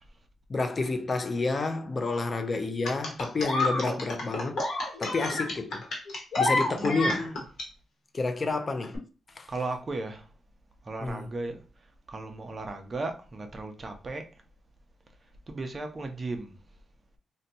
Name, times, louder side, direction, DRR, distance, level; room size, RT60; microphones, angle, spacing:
voice 1, 0.5-4.6 5.0-5.8 6.4-7.3 8.1-9.0 9.4-9.5 11.0-11.3, left 3 dB, 25° left, 0.4 m, -29 dB
sound 1, 2.8-7.6 8.8-9.0, left 2 dB, 65° left, 1.0 m, -29 dB
voice 2, 6.7-7.4 9.5-10.3 10.8-11.6 12.1-14.4 15.5-16.6, right 2 dB, 25° right, 0.5 m, -36 dB
2.7 x 2.2 x 3.9 m
wide cardioid pair, 170°, 0 cm